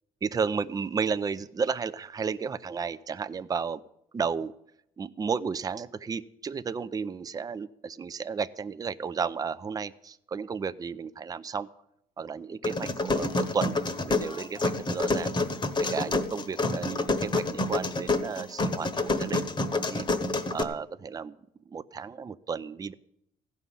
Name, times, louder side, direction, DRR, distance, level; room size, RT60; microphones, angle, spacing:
voice 1, 0.2-3.8 4.1-4.6 5.0-11.7 12.2-15.3 15.8-20.1 20.5-21.4 21.7-22.9, right 5 dB, 20° right, 13 dB, 0.5 m, -33 dB
sound 1, 12.6-20.6, left 2 dB, 30° left, 1.1 m, -28 dB
15.5 x 5.5 x 9.8 m, 0.79 s
cardioid pair, 110°, 17 cm